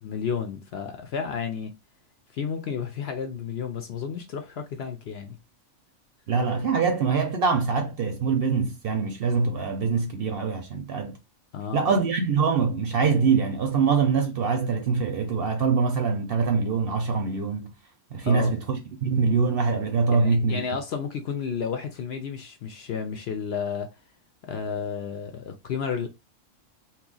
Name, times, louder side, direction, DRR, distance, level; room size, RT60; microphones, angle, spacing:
voice 1, 0.0-1.7 2.3-5.4 11.5-11.9 18.2-18.5 20.1-23.9 24.4-26.1, left 6 dB, 65° left, 0.7 m, -32 dB
voice 2, 6.3-11.2 11.7-17.7 18.1-20.6, right 5 dB, 60° right, 0.7 m, -24 dB
2.7 x 2.4 x 3.8 m
omnidirectional pair, 1.4 m